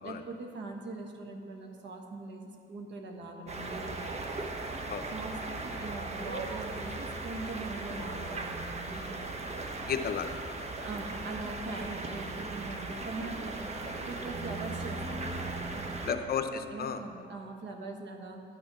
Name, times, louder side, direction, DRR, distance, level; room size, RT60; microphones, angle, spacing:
voice 1, 0.0-4.4 5.1-9.4 10.8-15.4 15.7-16.3 16.7-18.4, right 2 dB, 65° right, 3 dB, 1.3 m, -42 dB
sound 1, 3.5-16.1, right 2 dB, 35° right, 1.0 m, -38 dB
voice 2, 9.9-10.6 16.0-17.0, left 7 dB, 50° left, 8 dB, 0.7 m, -33 dB
10.5 x 6.9 x 6.0 m, 2.4 s
cardioid pair, 90°, 20 cm